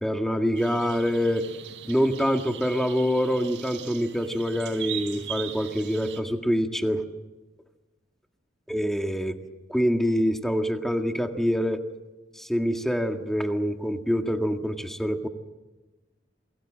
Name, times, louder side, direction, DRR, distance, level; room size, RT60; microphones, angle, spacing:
voice 1, 0.0-1.5 1.9-7.0 8.7-9.4 9.7-11.8 12.4-15.3, equal, ahead, 5 dB, 1.8 m, -25 dB
sound 1, 0.6-6.2, right 9 dB, 85° right, 4.4 m, -40 dB
28.5 x 22.0 x 7.6 m, 1.2 s
head